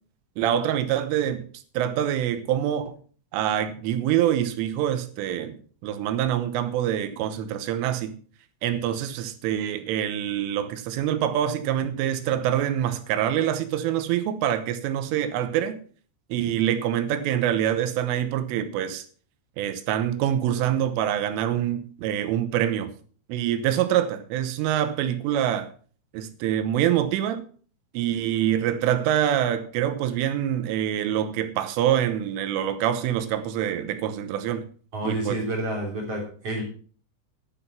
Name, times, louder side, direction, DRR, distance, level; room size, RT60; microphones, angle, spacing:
voice 1, 0.4-1.5 1.7-3.0 3.3-8.2 8.6-15.8 16.3-19.0 19.6-22.9 23.3-25.7 26.1-27.4 27.9-34.7 35.0-35.4, right 11 dB, 75° right, 3.4 m, -25 dB
voice 2, 34.9-36.7, right 1 dB, 35° right, 3.7 m, -29 dB
11.5 x 8.4 x 5.8 m
omnidirectional pair, 6.0 m